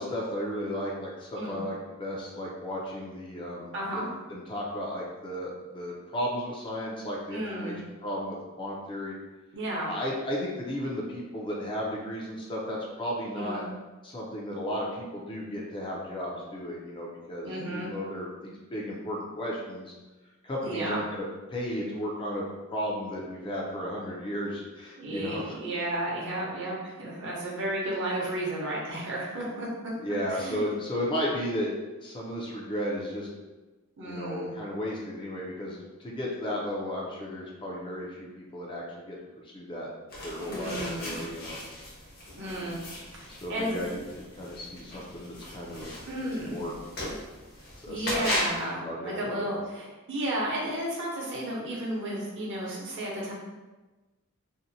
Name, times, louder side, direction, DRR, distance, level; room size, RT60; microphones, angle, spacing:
voice 1, 0.0-4.0 4.3-7.8 8.0-9.2 9.9-13.6 14.0-19.9 20.4-21.2 21.5-25.6 30.0-31.7 32.0-33.3 34.0-39.1 39.4-39.9 40.2-41.6 43.3-45.9 46.4-46.7 47.8-48.3 48.8-49.5, equal, 25° left, -3 dB, 0.4 m, -34 dB
voice 2, 3.7-4.1 7.3-7.8 9.5-9.9 13.3-13.6 17.4-17.9 20.6-21.0 25.0-29.7 30.3-30.6 34.0-34.5 40.5-41.2 42.3-42.8 43.2-43.8 46.1-46.6 47.9-53.3, right 1 dB, 60° right, -5 dB, 0.8 m, -33 dB
sound 1, 40.1-48.6, left 1 dB, 50° left, 0.9 m, -37 dB
2.7 x 2.1 x 2.6 m, 1.2 s
head